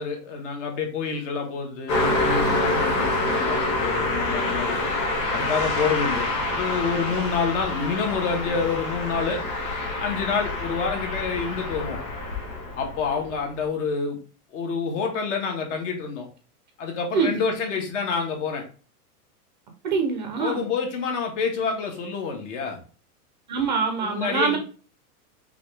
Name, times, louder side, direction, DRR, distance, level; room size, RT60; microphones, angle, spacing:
voice 1, 0.0-4.8 5.3-9.4 10.0-12.0 12.8-14.2 14.5-16.3 16.8-18.6 20.4-22.8 24.0-24.6, left 5 dB, 55° left, 3 dB, 1.5 m, -28 dB
Car passing by, 1.9-13.3, left 2 dB, 35° left, 1.6 m, -26 dB
voice 2, 19.8-20.7 23.5-24.6, right 5 dB, 30° right, 5 dB, 0.4 m, -24 dB
5.6 x 2.7 x 3.2 m, 0.37 s
supercardioid pair, 175°, 45 cm